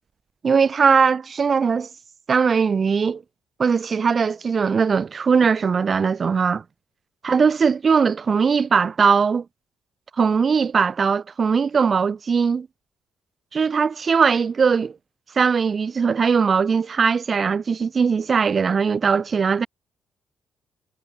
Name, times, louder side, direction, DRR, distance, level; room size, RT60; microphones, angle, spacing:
voice 1, 0.4-1.9 2.3-3.2 3.6-6.6 7.2-9.4 10.2-12.7 13.5-14.9 15.4-19.7, right 5 dB, 40° right, 3.0 m, -20 dB
cardioid pair, 90°, 0 cm